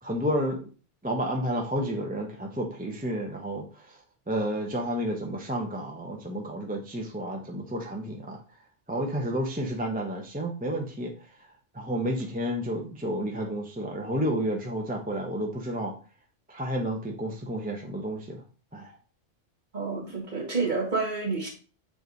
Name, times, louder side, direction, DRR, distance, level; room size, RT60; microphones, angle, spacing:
voice 1, 0.0-0.7 1.0-4.0 4.3-8.4 8.9-11.5 11.7-15.9 16.5-18.4 18.7-19.0, equal, 10° right, 0.8 m, -31 dB
voice 2, 19.7-21.5, right 4 dB, 40° right, 1.8 m, -29 dB
7.2 x 3.4 x 4.0 m
omnidirectional pair, 1.2 m